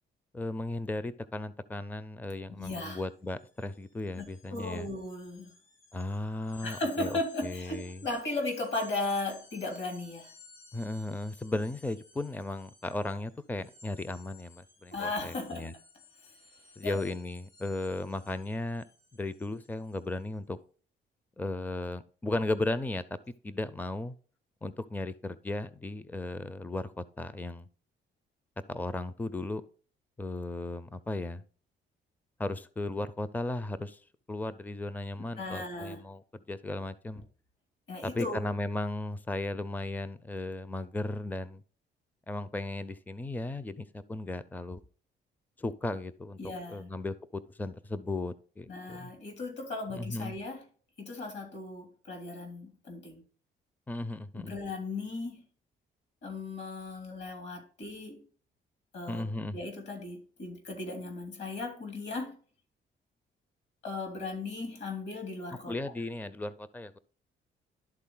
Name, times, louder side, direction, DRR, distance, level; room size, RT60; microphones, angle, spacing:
voice 1, 0.3-4.9 5.9-8.0 10.7-15.7 16.8-18.8 19.1-20.6 21.4-23.0 23.4-24.1 24.6-27.7 28.7-29.6 30.2-31.4 32.4-34.0 34.3-37.3 38.0-41.6 42.3-44.8 45.6-49.1 49.9-50.4 53.9-54.5 59.1-59.6 65.7-67.0, left 2 dB, 10° left, 0.5 m, -36 dB
voice 2, 2.6-3.0 4.1-5.5 6.6-10.3 14.9-15.7 16.3-16.4 16.8-17.0 35.4-36.0 37.9-38.5 46.4-46.9 48.7-50.6 51.0-53.2 54.3-55.4 56.2-58.2 58.9-59.3 59.5-62.4 63.8-65.7, left 2 dB, 65° left, 3.2 m, -36 dB
sound 1, 3.1-20.3, left 3 dB, 85° left, 2.8 m, -58 dB
12.0 x 4.0 x 3.8 m
cardioid pair, 90°, 20 cm